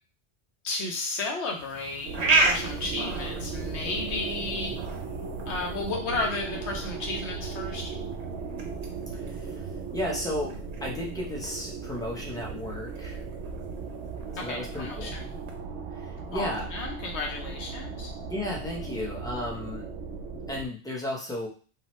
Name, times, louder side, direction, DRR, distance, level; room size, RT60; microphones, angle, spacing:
voice 1, 0.6-4.8 5.5-7.9 14.4-15.2 16.3-18.1, left 3 dB, 80° left, 1 dB, 1.0 m, -33 dB
sound 1, 1.5-15.6, right 3 dB, 45° right, 0.5 m, -34 dB
sound 2, 2.0-20.7, right 4 dB, 90° right, 0.9 m, -37 dB
voice 2, 9.1-13.2 14.3-15.1 15.9-16.7 18.3-19.9 20.5-21.5, left 1 dB, 5° left, -2 dB, 0.4 m, -34 dB
2.9 x 2.2 x 3.0 m, 0.39 s
omnidirectional pair, 1.1 m